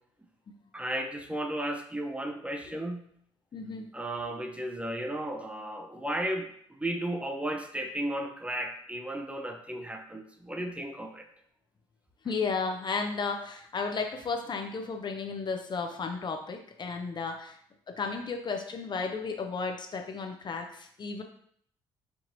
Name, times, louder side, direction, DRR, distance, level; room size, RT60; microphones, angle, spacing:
voice 1, 0.7-3.1 3.9-11.3, right 1 dB, 10° right, 4 dB, 0.6 m, -34 dB
voice 2, 3.5-3.9 12.2-17.6 17.9-21.2, left 4 dB, 40° left, 4 dB, 0.5 m, -33 dB
4.5 x 2.7 x 2.6 m, 0.65 s
hypercardioid pair, 55°, 12 cm